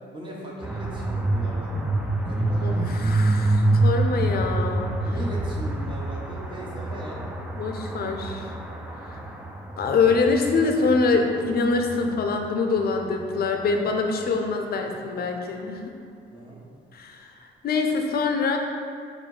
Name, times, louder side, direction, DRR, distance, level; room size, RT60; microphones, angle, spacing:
voice 1, 0.1-1.9 2.2-3.1 5.0-7.2 9.0-9.3 14.6-15.3 16.3-16.6, right 1 dB, 25° right, -3 dB, 1.0 m, -39 dB
sound 1, 0.6-14.5, right 2 dB, 5° right, 0.4 m, -27 dB
voice 2, 2.6-4.9 7.6-8.5 9.0-9.2 9.8-15.8 16.9-18.6, left 4 dB, 50° left, 3 dB, 0.6 m, -24 dB
4.2 x 2.6 x 4.7 m, 2.2 s
cardioid pair, 90°, 20 cm